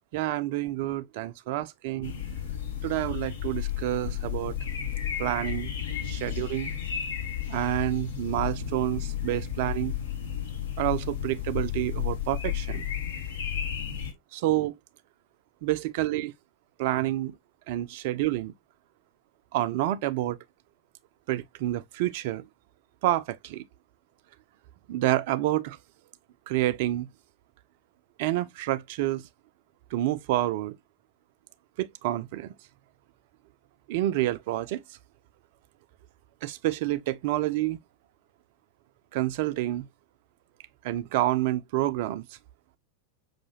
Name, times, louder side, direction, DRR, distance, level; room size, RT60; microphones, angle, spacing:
voice 1, 0.1-2.2 2.8-4.6 5.2-5.7 6.0-6.7 7.5-9.9 10.8-12.9 14.3-14.8 15.6-16.3 16.8-17.3 17.7-18.5 19.5-20.4 21.3-22.5 23.0-23.6 24.9-25.8 26.5-27.1 28.2-29.2 29.9-30.8 31.8-32.5 33.9-34.8 36.4-37.8 39.1-39.9 40.8-42.2, right 15 dB, 50° right, 0.4 m, -28 dB
sound 1, 2.0-14.1, left 9 dB, 60° left, 1.0 m, -33 dB
5.6 x 2.6 x 2.7 m
figure-of-eight pair, 90°, 0 cm